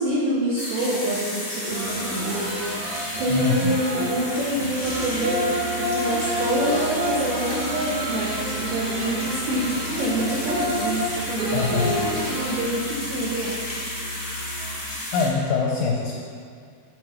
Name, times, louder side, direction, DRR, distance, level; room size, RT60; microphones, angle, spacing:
voice 1, 0.0-2.5 3.2-13.6, right 1 dB, 75° right, -7 dB, 1.7 m, -26 dB
sound 1, 0.6-15.3, left 1 dB, 40° left, 0.7 m, -33 dB
sound 2, 1.7-12.6, equal, 60° right, 2.7 m, -30 dB
voice 2, 3.3-3.8 11.5-11.9 15.1-16.2, left 5 dB, 80° left, -1 dB, 2.1 m, -23 dB
Musical instrument, 4.5-14.9, equal, 65° left, 1.1 m, -39 dB
7.6 x 4.6 x 5.8 m, 2.2 s
omnidirectional pair, 4.6 m